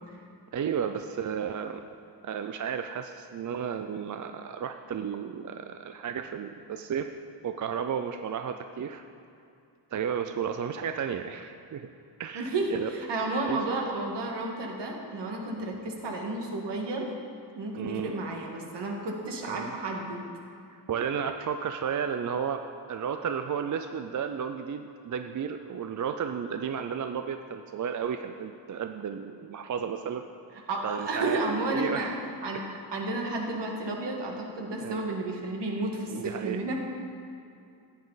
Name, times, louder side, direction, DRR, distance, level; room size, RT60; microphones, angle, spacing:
voice 1, 0.5-1.8 2.2-7.2 7.4-9.0 9.9-11.9 12.2-12.9 13.5-13.6 17.8-18.2 19.5-19.7 20.7-22.6 22.9-30.2 30.8-32.2 34.8-35.1 36.1-36.7, right 7 dB, 45° right, 7 dB, 0.4 m, -33 dB
voice 2, 12.3-17.1 17.6-20.2 30.7-32.1 32.4-32.6 32.9-36.7, right 2 dB, 75° right, 0 dB, 1.8 m, -32 dB
15.0 x 9.6 x 4.0 m, 2.5 s
wide cardioid pair, 155°, 43 cm